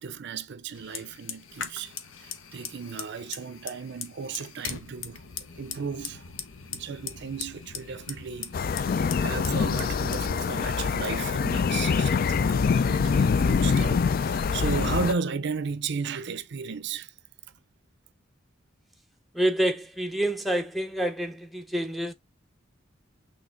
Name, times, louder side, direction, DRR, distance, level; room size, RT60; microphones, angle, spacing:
voice 1, 0.0-1.9 2.2-5.2 5.6-6.2 6.7-17.1, right 5 dB, 60° right, 0.5 m, -34 dB
Fire, 0.7-12.6, left 7 dB, 80° left, 0.8 m, -41 dB
sound 1, 8.5-15.1, left 5 dB, 50° left, 0.4 m, -25 dB
voice 2, 19.3-22.1, right 1 dB, ahead, 0.6 m, -27 dB
6.2 x 3.3 x 2.5 m
head